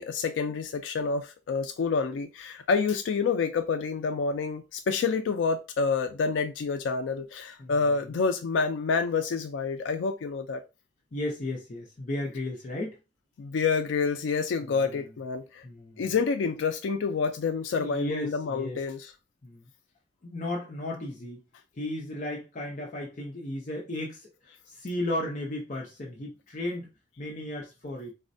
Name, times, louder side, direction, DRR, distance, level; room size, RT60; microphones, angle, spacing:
voice 1, 0.0-10.6 13.4-15.6 16.0-19.1, left 5 dB, 90° left, 0.3 m, -28 dB
voice 2, 7.6-8.2 11.1-13.0 14.6-15.1 15.6-16.1 17.8-18.8 19.4-19.7 20.2-21.4 21.7-28.1, left 1 dB, 45° left, 0.6 m, -35 dB
4.1 x 2.1 x 2.6 m
head